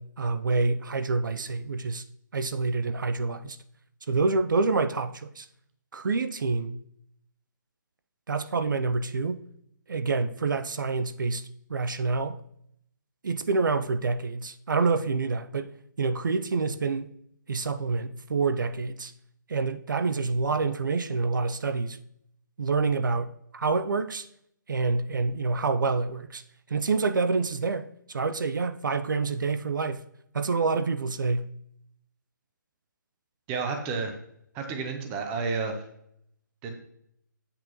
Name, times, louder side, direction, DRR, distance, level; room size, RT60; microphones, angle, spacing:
voice 1, 0.0-2.0 2.3-3.6 4.1-5.5 5.9-6.8 8.3-9.4 9.9-12.4 13.2-15.7 16.0-17.1 17.5-19.1 19.5-22.0 22.6-24.3 24.7-26.4 26.7-30.0 30.3-31.5, right 4 dB, 70° right, 0.6 m, -27 dB
voice 2, 33.5-34.2 34.5-35.8 36.6-36.7, right 4 dB, 10° right, 0.6 m, -30 dB
8.5 x 7.8 x 3.0 m
hypercardioid pair, 165°, 11 cm